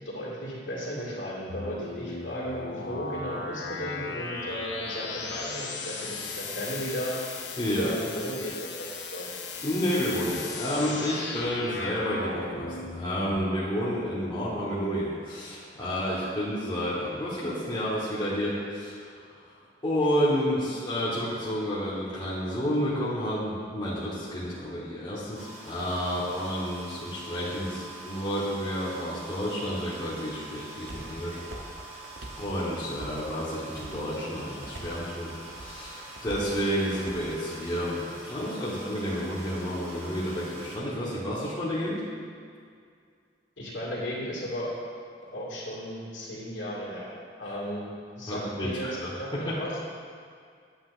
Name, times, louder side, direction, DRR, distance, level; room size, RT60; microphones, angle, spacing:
voice 1, 0.0-7.2 7.7-8.5 8.8-9.3 43.6-44.7 45.2-47.1 47.4-47.9 48.2-49.7, equal, 85° left, -8 dB, 1.9 m, -35 dB
sound 1, 1.5-13.4, left 3 dB, 65° left, 0.8 m, -37 dB
voice 2, 7.6-7.9 9.6-19.1 19.8-31.4 32.4-42.0 48.3-49.6, equal, 25° left, -9 dB, 1.2 m, -30 dB
sound 2, 25.3-40.8, right 2 dB, 40° right, 1.9 m, -44 dB
sound 3, 30.5-37.3, right 1 dB, 70° right, 0.9 m, -45 dB
8.6 x 7.8 x 2.5 m, 2.2 s
head